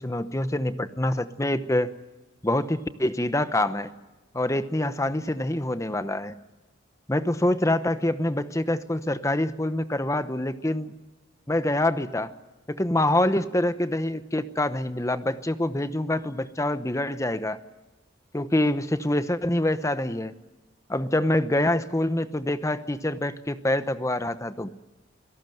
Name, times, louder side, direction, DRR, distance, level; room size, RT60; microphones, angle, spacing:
voice 1, 0.0-1.9 2.4-3.9 4.3-6.3 7.1-10.9 11.5-12.3 12.7-17.6 18.3-20.3 20.9-24.7, left 1 dB, 15° left, 12 dB, 0.9 m, -25 dB
26.5 x 17.5 x 7.9 m, 1.1 s
head